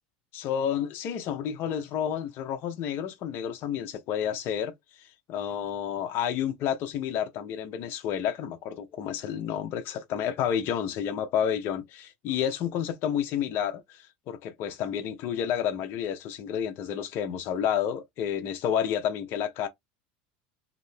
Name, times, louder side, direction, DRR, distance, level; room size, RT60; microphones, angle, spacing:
voice 1, 0.3-19.7, left 9 dB, 50° left, 0.5 m, -30 dB
2.6 x 2.5 x 3.3 m
supercardioid pair, 120°, 5 cm